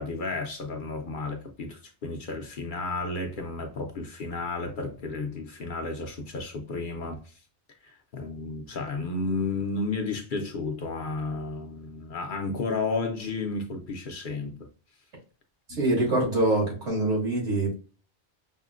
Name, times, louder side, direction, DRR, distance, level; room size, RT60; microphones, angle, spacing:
voice 1, 0.0-7.3 7.8-14.7 15.7-15.8, left 3 dB, 55° left, 0.7 m, -32 dB
voice 2, 15.7-17.7, right 2 dB, 80° right, 2.1 m, -24 dB
5.4 x 2.1 x 2.4 m
omnidirectional pair, 1.2 m